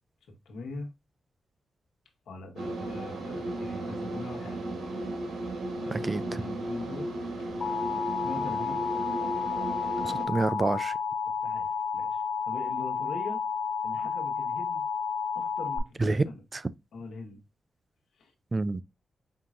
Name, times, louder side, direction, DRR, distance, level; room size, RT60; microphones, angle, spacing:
voice 1, 0.4-0.9 2.3-4.7 4.9-5.0 5.8-7.1 8.2-8.8 11.4-13.4 13.8-14.8 15.3-16.4 16.9-17.4 18.2-18.3, left 3 dB, 85° left, 1.3 m, -41 dB
sound 1, 2.6-10.3, right 2 dB, 85° right, 1.2 m, -35 dB
voice 2, 5.9-6.2 10.0-11.0 16.0-16.3 16.5-16.6 18.5-18.8, right 3 dB, 30° right, 0.4 m, -28 dB
Alarm, 7.6-15.8, left 6 dB, 60° left, 0.7 m, -31 dB
5.3 x 2.9 x 2.5 m
cardioid pair, 70°, 0 cm